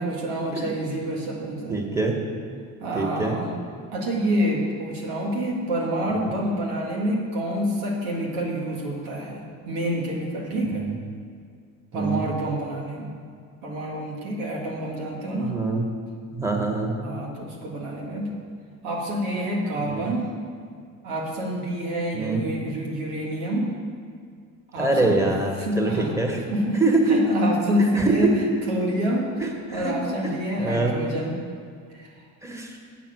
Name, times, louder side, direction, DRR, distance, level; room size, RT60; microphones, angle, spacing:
voice 1, 0.0-1.8 2.8-3.5 3.9-10.8 11.9-13.2 13.6-15.5 17.0-18.3 18.8-20.3 21.0-23.7 24.7-25.2 25.6-26.1 26.4-28.3 28.7-31.4 31.9-32.1, right 1 dB, 90° right, -2 dB, 1.9 m, -27 dB
voice 2, 1.7-2.2 2.9-3.4 10.7-10.9 11.9-12.2 15.4-15.8 16.3-16.9 19.9-20.1 22.1-22.5 24.8-26.4 26.8-27.1 27.8-28.1 29.4-29.9 30.6-30.9 32.4-32.7, right 3 dB, 5° right, 1 dB, 1.4 m, -24 dB
7.7 x 6.0 x 7.7 m, 2.2 s
supercardioid pair, 80°, 41 cm